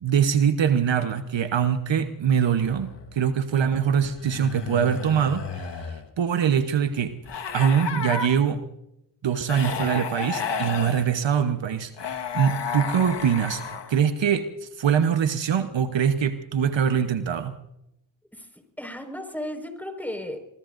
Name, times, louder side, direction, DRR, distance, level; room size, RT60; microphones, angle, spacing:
voice 1, 0.0-7.1 7.5-8.6 9.2-13.6 13.9-17.6, right 8 dB, 70° right, 9 dB, 1.1 m, -23 dB
sound 1, 2.6-3.2 4.2-6.1 7.2-8.3 9.5-11.1 12.0-14.0, left 5 dB, 65° left, 1.6 m, -32 dB
voice 2, 18.3-20.4, left 1 dB, 5° left, 5 dB, 5.1 m, -35 dB
24.0 x 22.0 x 2.6 m, 0.82 s
supercardioid pair, 40°, 46 cm